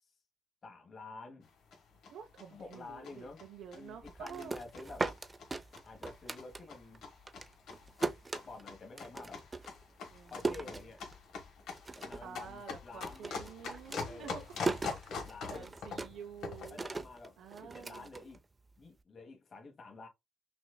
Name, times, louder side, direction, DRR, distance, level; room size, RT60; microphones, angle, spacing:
voice 1, 0.6-1.5 2.5-3.4 3.7-5.1 5.8-7.0 8.3-9.4 10.2-11.0 11.9-13.3 14.0-14.4 15.1-15.7 16.7-17.4 17.6-18.4 18.8-20.1, left 3 dB, 45° left, 1.4 m, -50 dB
sound 1, 1.4-16.8, left 5 dB, 75° left, 1.3 m, -45 dB
voice 2, 2.1-4.5 10.1-10.9 12.2-14.7 15.0-16.8 17.4-18.1, right 7 dB, 75° right, 0.6 m, -49 dB
sound 2, 4.0-7.0 7.3-11.4 11.7-12.3 12.6-18.8, right 3 dB, 25° right, 0.5 m, -39 dB
5.9 x 2.5 x 2.2 m
cardioid pair, 90°, 0 cm